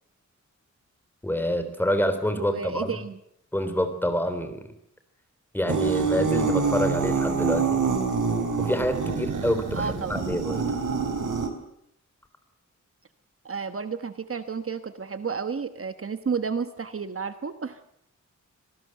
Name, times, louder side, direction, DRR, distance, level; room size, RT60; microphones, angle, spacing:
voice 1, 1.2-3.0 3.5-4.6 5.5-7.8 8.6-10.7, equal, 5° left, 9 dB, 3.5 m, -27 dB
voice 2, 2.4-3.2 9.7-10.2 13.4-17.8, right 5 dB, 50° right, 10 dB, 1.3 m, -31 dB
sound 1, 5.7-11.5, right 5 dB, 90° right, 3.8 m, -26 dB
25.5 x 18.5 x 7.9 m, 0.75 s
wide cardioid pair, 140°, 30 cm